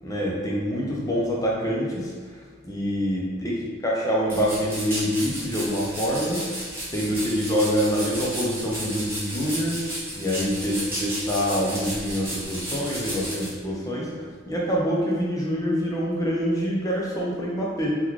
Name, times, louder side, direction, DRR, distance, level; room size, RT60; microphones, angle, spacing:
voice 1, 0.0-6.6 6.9-18.0, equal, 15° left, -4 dB, 0.5 m, -26 dB
sound 1, 4.3-13.5, right 1 dB, 10° right, 0.8 m, -33 dB
3.0 x 2.3 x 3.6 m, 1.5 s
head